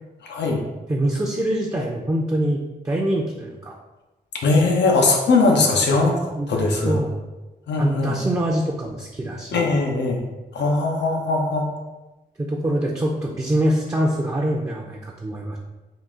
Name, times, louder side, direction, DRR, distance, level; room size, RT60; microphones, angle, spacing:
voice 1, 0.2-0.6 4.4-7.0 7.7-8.2 9.5-10.2 10.5-11.7, left 3 dB, 85° left, 1 dB, 0.7 m, -20 dB
voice 2, 0.9-3.8 6.3-7.1 7.8-9.7 12.4-15.6, right 1 dB, 20° right, -2 dB, 0.5 m, -24 dB
3.9 x 2.4 x 3.6 m, 1.1 s
cardioid pair, 60°, 17 cm